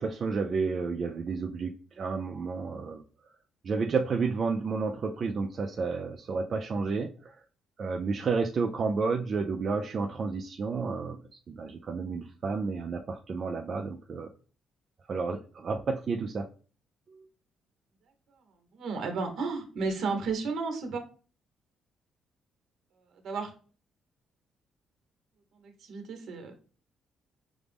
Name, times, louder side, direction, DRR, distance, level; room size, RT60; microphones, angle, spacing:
voice 1, 0.0-3.0 3.6-7.3 7.8-11.2 11.5-14.3 15.1-16.5 17.1-17.3, right 4 dB, 40° right, 3 dB, 0.4 m, -31 dB
voice 2, 18.7-21.0 23.2-23.5 25.6-26.6, right 4 dB, 65° right, 5 dB, 1.0 m, -33 dB
6.0 x 2.0 x 3.4 m, 0.39 s
cardioid pair, 130°, 0 cm